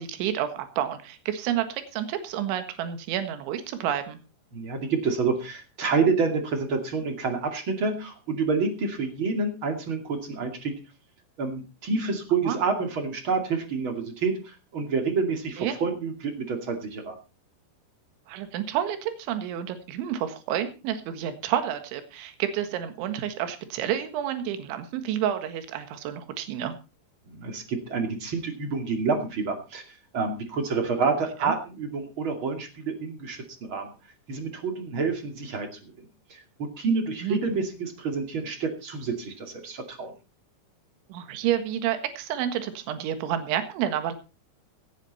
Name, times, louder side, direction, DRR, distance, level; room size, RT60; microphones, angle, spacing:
voice 1, 0.0-4.2 12.5-12.6 15.6-15.8 18.3-26.8 31.4-31.5 37.2-37.4 41.1-44.1, right 10 dB, 75° right, 9 dB, 3.9 m, -29 dB
voice 2, 4.5-10.7 11.4-17.1 27.3-29.8 30.1-33.9 34.3-35.9 36.3-40.1, right 4 dB, 35° right, 5 dB, 2.2 m, -28 dB
17.5 x 11.5 x 4.2 m, 0.32 s
omnidirectional pair, 5.5 m